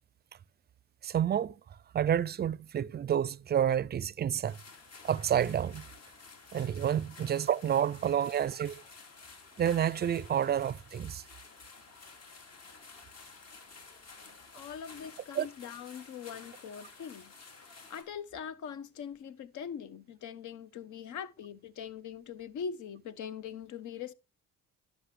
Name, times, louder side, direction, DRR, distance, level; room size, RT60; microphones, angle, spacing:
voice 1, 1.0-1.6 1.9-4.6 5.0-5.8 6.5-8.8 9.6-11.2 15.3-15.5, right 9 dB, 35° right, 0.4 m, -29 dB
sound 1, 4.5-18.0, left 4 dB, 55° left, 3.0 m, -52 dB
voice 2, 14.5-17.3 17.6-24.1, left 7 dB, 75° left, 1.0 m, -42 dB
11.5 x 6.4 x 3.3 m
cardioid pair, 90°, 30 cm